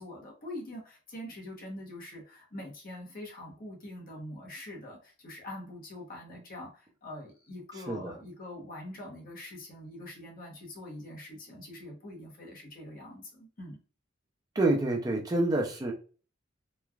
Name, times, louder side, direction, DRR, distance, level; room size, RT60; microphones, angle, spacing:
voice 1, 0.0-13.8, left 1 dB, 45° left, -1 dB, 1.0 m, -44 dB
voice 2, 14.6-15.9, right 2 dB, 20° right, -1 dB, 0.4 m, -27 dB
3.1 x 2.3 x 2.3 m, 0.38 s
head